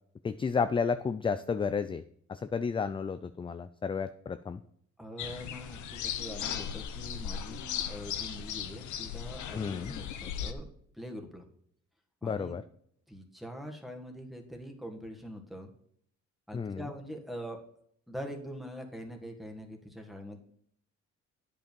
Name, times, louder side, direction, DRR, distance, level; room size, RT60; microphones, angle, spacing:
voice 1, 0.2-2.0 2.3-4.6 9.5-9.9 12.2-12.6 16.5-16.9, left 5 dB, 20° left, 12 dB, 0.3 m, -32 dB
voice 2, 5.0-10.7 10.9-11.4 12.2-12.6 13.1-15.7 16.5-17.6 18.1-20.4, equal, ahead, 3 dB, 1.7 m, -43 dB
sound 1, 5.2-10.5, left 9 dB, 75° left, 0.8 m, -37 dB
9.0 x 5.3 x 5.3 m, 0.66 s
cardioid pair, 90°, 30 cm